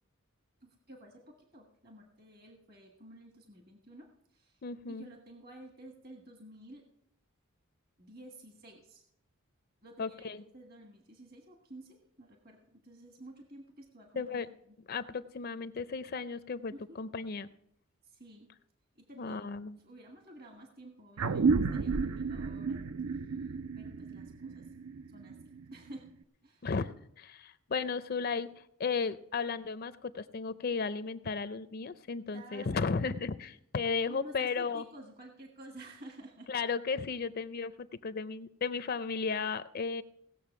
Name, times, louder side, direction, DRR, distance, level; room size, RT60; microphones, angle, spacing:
voice 1, 0.6-4.6 4.9-6.8 8.0-9.0 9.8-14.5 16.7-17.0 18.0-18.5 18.9-19.5 19.8-22.8 23.1-23.3 23.8-24.7 25.1-26.1 26.4-26.7 32.3-32.8 33.1-33.2 34.1-36.5, right 1 dB, 45° right, 2 dB, 1.4 m, -52 dB
voice 2, 4.6-5.1 10.0-10.4 14.2-14.5 14.9-17.5 19.2-19.8 26.6-26.9 27.2-34.8 36.5-40.0, left 5 dB, 45° left, 13 dB, 0.5 m, -35 dB
sound 1, 21.2-26.1, right 4 dB, 80° right, 0.6 m, -32 dB
18.0 x 7.1 x 5.9 m, 0.74 s
head